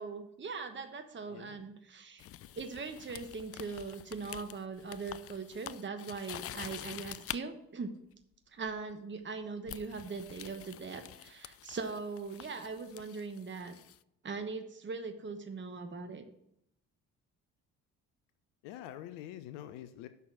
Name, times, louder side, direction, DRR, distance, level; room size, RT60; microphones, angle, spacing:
voice 1, 0.0-2.3 2.6-7.9 8.5-13.8 14.2-16.2, right 4 dB, 25° right, 8 dB, 1.2 m, -40 dB
voice 2, 1.3-1.6 18.6-20.1, left 12 dB, 70° left, 11 dB, 0.7 m, -46 dB
sound 1, 2.2-7.4 8.7-8.9 9.7-14.0, left 12 dB, 35° left, 0.4 m, -47 dB
8.3 x 6.2 x 6.0 m, 0.78 s
hypercardioid pair, 45°, 42 cm